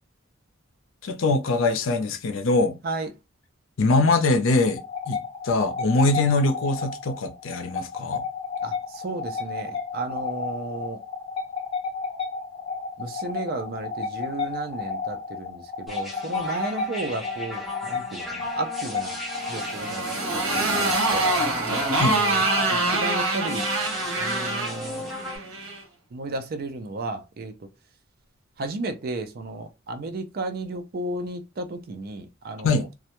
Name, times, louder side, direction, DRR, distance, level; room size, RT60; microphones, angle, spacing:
voice 1, 1.0-2.8 3.8-4.8 5.1-8.2 21.9-22.2 32.6-32.9, left 2 dB, 75° left, 0.5 m, -22 dB
sound 1, 4.6-24.0, left 5 dB, 25° left, 0.8 m, -33 dB
voice 2, 8.6-11.0 13.0-19.2 19.5-21.3 22.0-23.7 24.1-25.1 26.1-27.5 28.6-32.9, right 2 dB, 50° right, 0.4 m, -33 dB
sound 2, 15.9-25.4, left 1 dB, ahead, 0.6 m, -35 dB
Motorcycle, 19.4-25.8, right 2 dB, 85° right, 1.0 m, -25 dB
2.3 x 2.1 x 2.9 m
head